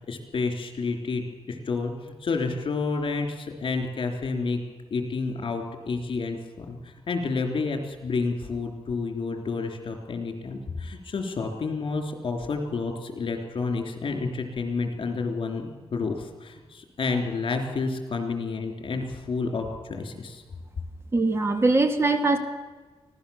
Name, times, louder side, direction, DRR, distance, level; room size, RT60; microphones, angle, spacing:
voice 1, 0.0-4.6 4.9-20.4, left 4 dB, 55° left, 5 dB, 3.4 m, -30 dB
voice 2, 21.1-22.4, right 2 dB, 25° right, 7 dB, 1.9 m, -21 dB
24.5 x 16.5 x 7.1 m, 1.3 s
wide cardioid pair, 130°, 10 cm